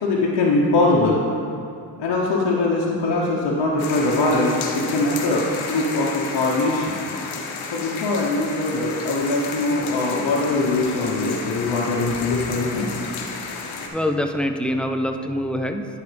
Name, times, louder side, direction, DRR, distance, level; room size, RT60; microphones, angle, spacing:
voice 1, 0.0-1.2 2.0-7.0 7.7-12.9, left 2 dB, 60° left, -4 dB, 1.1 m, -22 dB
sound 1, 3.8-13.9, left 4 dB, 80° left, 0.9 m, -32 dB
voice 2, 13.9-16.0, left 1 dB, ahead, 5 dB, 0.5 m, -24 dB
10.5 x 5.0 x 3.4 m, 2.5 s
supercardioid pair, 50°, 47 cm